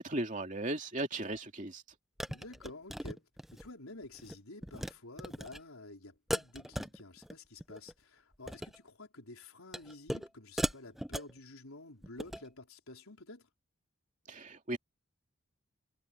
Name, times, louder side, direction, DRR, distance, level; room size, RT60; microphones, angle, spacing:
voice 1, 0.0-1.8 14.3-14.8, right 1 dB, 35° right, 2.8 m, -36 dB
sound 1, 1.3-1.4 2.2-3.7 4.0-4.3 4.6-4.9 5.2-5.6 6.3-7.3 7.6-7.9 8.3-8.8 9.7-10.3 10.6-11.4 12.0-12.5, equal, ahead, 0.5 m, -38 dB
voice 2, 2.3-3.2 3.5-13.5, left 2 dB, 90° left, 4.5 m, -50 dB
head